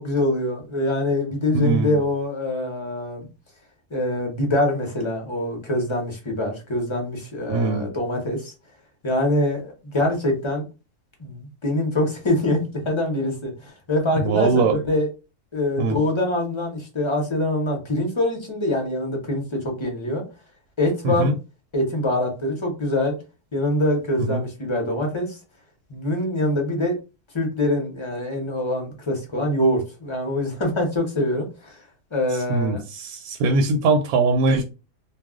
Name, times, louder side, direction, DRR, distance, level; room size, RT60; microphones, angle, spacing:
voice 1, 0.0-3.3 3.9-8.5 9.0-10.7 11.2-12.6 12.8-15.1 15.5-20.2 20.8-21.3 21.7-23.1 23.5-25.4 25.9-27.0 27.3-31.8 32.1-32.8, left 1 dB, 30° left, 0.5 m, -24 dB
voice 2, 1.5-1.9 7.5-7.9 14.2-14.8 15.8-16.0 21.0-21.3 24.3-24.4 32.5-34.6, right 3 dB, 75° right, 1.0 m, -21 dB
2.3 x 2.3 x 3.6 m
omnidirectional pair, 1.7 m